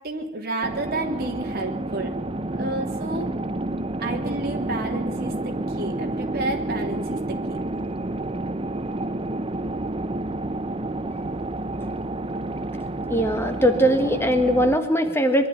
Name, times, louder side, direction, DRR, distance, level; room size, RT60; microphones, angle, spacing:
voice 1, 0.0-2.1 2.5-3.3 4.0-7.2 7.5-7.6, right 2 dB, 50° right, 2 dB, 3.2 m, -30 dB
sound 1, 0.6-14.8, right 2 dB, 30° right, 0.7 m, -29 dB
voice 2, 13.1-15.5, equal, 15° left, 6 dB, 1.5 m, -20 dB
23.0 x 12.5 x 9.6 m, 0.94 s
head